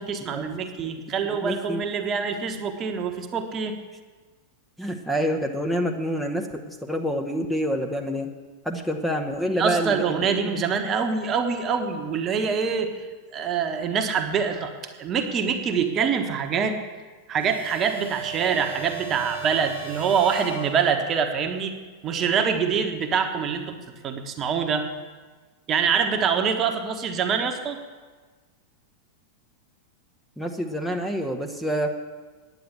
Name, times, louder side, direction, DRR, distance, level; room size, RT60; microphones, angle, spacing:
voice 1, 0.0-3.7 9.5-13.1 13.3-14.7 15.0-16.8 17.3-21.7 22.0-23.8 24.0-24.9 25.7-27.8, right 6 dB, 30° right, 6 dB, 1.2 m, -25 dB
voice 2, 1.2-1.8 4.8-8.3 8.6-10.6 30.4-32.0, equal, ahead, 3 dB, 0.9 m, -27 dB
sound 1, 17.4-21.3, right 6 dB, 80° left, 3.3 m, -37 dB
9.7 x 9.2 x 8.2 m, 1.4 s
figure-of-eight pair, 90°, 0 cm